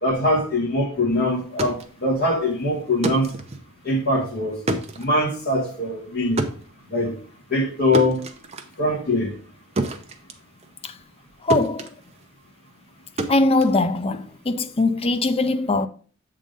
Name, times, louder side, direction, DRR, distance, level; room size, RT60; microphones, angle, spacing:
voice 1, 0.0-3.3 3.8-4.6 5.0-6.4 6.9-7.1 7.5-8.2 8.8-9.3, left 1 dB, 45° left, 2.0 m, -22 dB
sound 1, 1.3-11.2 11.5-14.5, right 2 dB, 30° right, 0.7 m, -31 dB
voice 2, 11.4-11.9 13.3-15.9, left 2 dB, 25° left, 0.4 m, -21 dB
7.5 x 3.7 x 5.2 m
head